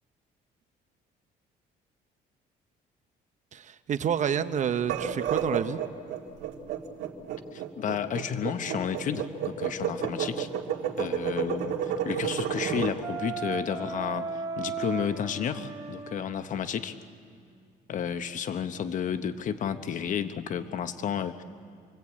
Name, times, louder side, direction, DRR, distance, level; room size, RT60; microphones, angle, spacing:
voice 1, 3.5-5.8, right 8 dB, 45° right, 10 dB, 0.9 m, -28 dB
sound 1, 4.8-13.0, right 9 dB, 85° right, 2.1 m, -31 dB
voice 2, 7.5-10.5 11.0-17.0 17.9-21.4, left 8 dB, 50° left, 10 dB, 1.0 m, -32 dB
Wind instrument woodwind instrument, 13.0-16.3, right 5 dB, 15° right, 6.7 m, -35 dB
27.5 x 20.5 x 8.6 m, 2.2 s
cardioid pair, 110°, 17 cm